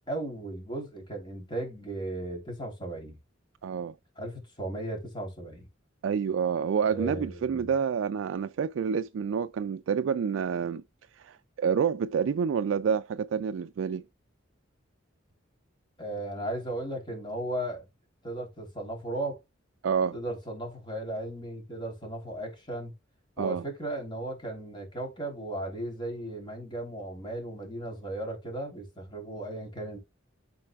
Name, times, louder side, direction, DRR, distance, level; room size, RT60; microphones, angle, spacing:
voice 1, 0.1-3.2 4.2-5.7 6.9-7.6 16.0-17.8 18.2-19.4 20.1-22.9 23.4-30.0, right 1 dB, 25° left, 3.4 m, -36 dB
voice 2, 3.6-4.0 6.0-10.8 11.1-14.1 19.8-20.2 23.4-23.6, right 7 dB, 75° right, 0.3 m, -28 dB
12.5 x 4.2 x 2.4 m
head